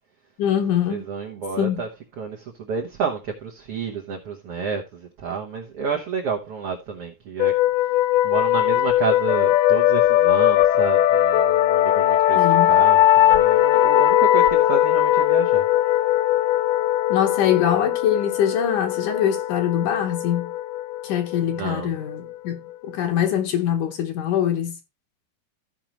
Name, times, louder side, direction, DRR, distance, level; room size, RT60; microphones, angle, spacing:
voice 1, 0.4-1.0 1.6-1.8 12.4-12.8 17.1-20.5 21.0-24.8, left 9 dB, 70° left, 2.3 m, -23 dB
voice 2, 0.9-1.9 2.2-7.5 8.2-15.7 21.5-21.9, right 5 dB, 80° right, 1.3 m, -30 dB
sound 1, 7.4-22.7, left 13 dB, 85° left, 2.6 m, -19 dB
15.5 x 5.2 x 2.9 m
omnidirectional pair, 4.3 m